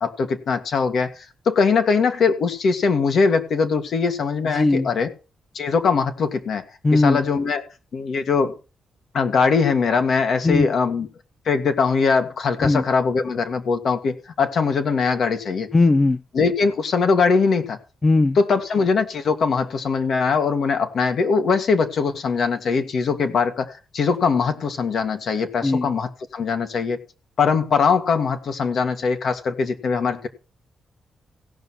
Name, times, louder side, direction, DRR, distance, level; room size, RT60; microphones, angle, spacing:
voice 1, 0.0-5.1 5.5-6.6 6.9-7.7 7.9-8.5 9.1-11.1 11.5-15.7 16.3-17.8 18.4-27.0 27.4-30.3, left 5 dB, 65° left, 6 dB, 1.9 m, -21 dB
voice 2, 4.5-4.9 6.8-7.2 10.4-10.7 12.6-12.8 15.7-16.2 18.0-18.4 25.6-25.9, left 2 dB, 30° left, 14 dB, 0.5 m, -18 dB
16.5 x 5.7 x 6.2 m, 0.34 s
cardioid pair, 70°, 0 cm